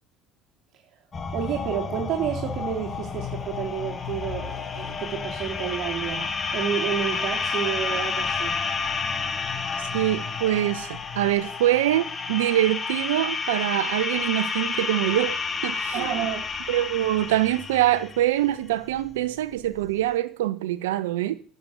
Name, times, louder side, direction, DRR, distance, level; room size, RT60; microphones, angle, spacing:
sound 1, 1.1-20.1, left 5 dB, 30° left, 2.0 m, -30 dB
voice 1, 1.3-8.6 15.9-16.5, right 9 dB, 60° right, 3.5 m, -30 dB
voice 2, 9.9-15.4 15.6-16.1 16.7-21.4, right 14 dB, 85° right, 1.2 m, -24 dB
10.5 x 8.1 x 8.0 m
hypercardioid pair, 75°, 0 cm